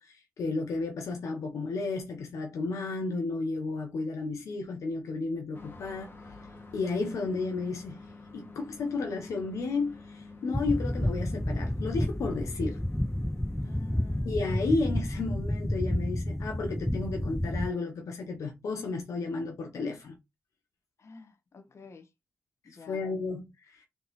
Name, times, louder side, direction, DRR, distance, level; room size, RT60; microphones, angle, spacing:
voice 1, 0.0-6.1 6.7-12.8 14.2-20.2 22.9-23.8, left 3 dB, 85° left, 0.7 m, -33 dB
sound 1, 5.5-14.2, left 3 dB, 45° left, 1.5 m, -48 dB
sound 2, 10.5-17.7, left 1 dB, 5° left, 0.3 m, -30 dB
voice 2, 13.6-14.4 21.0-22.1 22.6-23.0, left 4 dB, 60° left, 1.0 m, -49 dB
4.0 x 3.8 x 3.0 m
cardioid pair, 45°, 5 cm